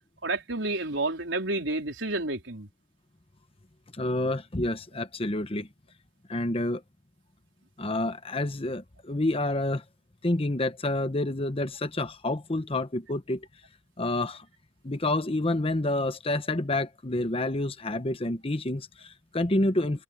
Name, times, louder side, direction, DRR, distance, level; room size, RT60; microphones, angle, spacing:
voice 1, 0.2-2.7, right 2 dB, 80° right, 4.1 m, -30 dB
voice 2, 3.9-5.7 6.3-6.8 7.8-9.8 10.2-13.5 14.0-14.5 14.8-20.0, left 2 dB, 30° left, 1.0 m, -28 dB
head